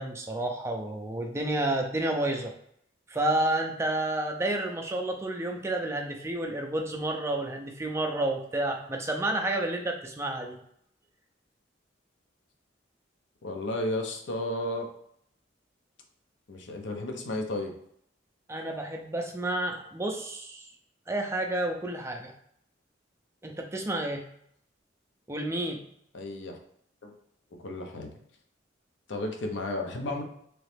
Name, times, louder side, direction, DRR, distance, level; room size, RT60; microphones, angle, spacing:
voice 1, 0.0-2.5 3.1-10.6 18.5-20.7 21.1-22.3 23.4-24.2 25.3-25.8, right 1 dB, 15° right, 3 dB, 0.4 m, -30 dB
voice 2, 13.4-14.9 16.5-17.7 26.1-26.6 27.0-27.1 27.6-28.1 29.1-30.2, left 1 dB, 70° left, 3 dB, 0.6 m, -33 dB
3.1 x 2.9 x 3.2 m, 0.70 s
head